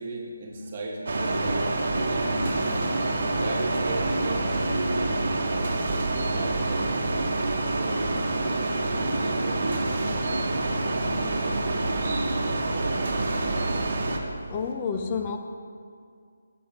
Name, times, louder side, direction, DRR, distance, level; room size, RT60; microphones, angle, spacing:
voice 1, 0.0-1.7 2.1-2.8 3.2-5.1 6.1-7.2 7.6-10.1 10.4-11.9 13.6-14.5, right 2 dB, 40° right, 0 dB, 1.2 m, -37 dB
sound 1, 1.1-14.2, right 2 dB, 60° right, 1.0 m, -27 dB
voice 2, 14.5-15.4, left 5 dB, 25° left, 4 dB, 0.4 m, -29 dB
7.0 x 6.3 x 5.7 m, 2.2 s
figure-of-eight pair, 160°, 0 cm